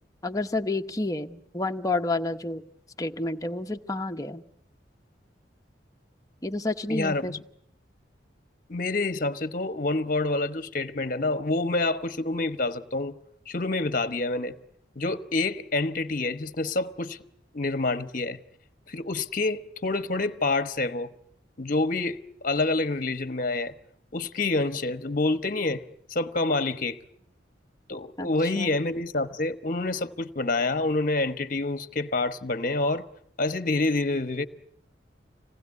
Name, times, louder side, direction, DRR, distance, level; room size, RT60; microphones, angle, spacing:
voice 1, 0.2-2.6 3.0-4.4 6.4-7.4 28.2-28.7, left 2 dB, 20° left, 1.0 m, -30 dB
voice 2, 6.9-7.4 8.7-13.2 13.5-14.5 15.0-17.2 17.5-18.4 18.9-21.1 21.6-23.7 24.1-25.8 26.1-27.0 27.9-33.0 33.4-34.5, left 2 dB, 50° left, 1.1 m, -27 dB
26.5 x 19.0 x 9.5 m
head